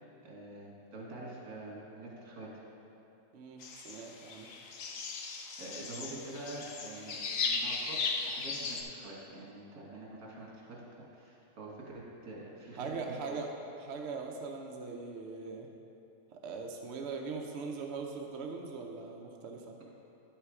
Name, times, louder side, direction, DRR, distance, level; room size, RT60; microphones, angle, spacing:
voice 1, 0.2-2.5 5.6-13.4, right 2 dB, 75° right, -4 dB, 2.0 m, -46 dB
voice 2, 3.3-4.5 12.8-13.5 13.8-15.7 16.3-19.7, right 4 dB, 60° right, 1 dB, 0.8 m, -41 dB
sound 1, 3.6-8.8, left 4 dB, 65° left, 1.1 m, -37 dB
9.3 x 5.7 x 4.8 m, 2.8 s
omnidirectional pair, 1.6 m